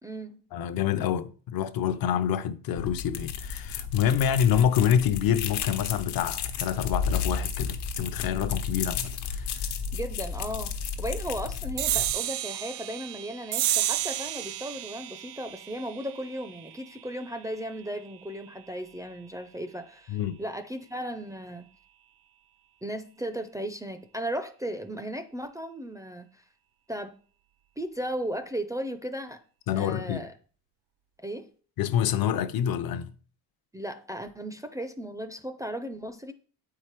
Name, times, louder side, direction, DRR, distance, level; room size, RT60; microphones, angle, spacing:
voice 1, 0.0-0.4 9.9-21.6 22.8-26.4 26.9-27.1 27.8-29.4 29.7-30.3 31.2-31.5 33.7-36.3, right 1 dB, 10° right, 0.4 m, -36 dB
voice 2, 0.5-9.5 20.1-20.4 29.7-30.3 31.8-33.1, left 9 dB, 60° left, 0.7 m, -27 dB
sound 1, 2.8-12.1, left 6 dB, 85° left, 1.2 m, -33 dB
sound 2, 11.8-18.6, right 13 dB, 75° right, 0.6 m, -32 dB
8.4 x 4.9 x 4.4 m
cardioid pair, 140°, 40 cm